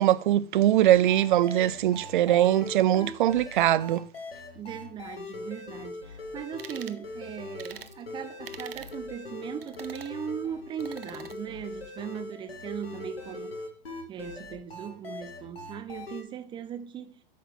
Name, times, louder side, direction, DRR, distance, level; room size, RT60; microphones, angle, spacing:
voice 1, 0.0-4.1, right 12 dB, 55° right, 0.5 m, -22 dB
sound 1, 0.8-16.2, left 3 dB, 80° left, 2.0 m, -41 dB
voice 2, 4.6-13.6 14.1-17.2, right 8 dB, 15° right, 0.7 m, -38 dB
sound 2, 6.6-7.0 7.6-7.9 8.4-9.0 9.6-10.1 10.8-11.4, right 8 dB, 75° right, 0.8 m, -44 dB
11.5 x 3.9 x 4.3 m
hypercardioid pair, 115°, 30 cm